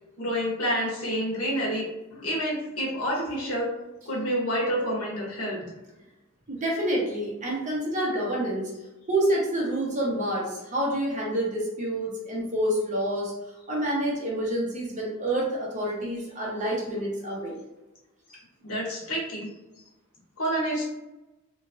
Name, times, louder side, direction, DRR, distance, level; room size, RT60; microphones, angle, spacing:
voice 1, 0.2-1.8 2.1-3.7 4.0-5.6 18.6-19.5 20.4-20.8, equal, 85° left, -4 dB, 1.2 m, -28 dB
voice 2, 6.5-8.7 9.1-13.3 13.7-17.6, right 1 dB, 35° right, -4 dB, 0.9 m, -28 dB
3.0 x 2.5 x 2.6 m, 1.0 s
head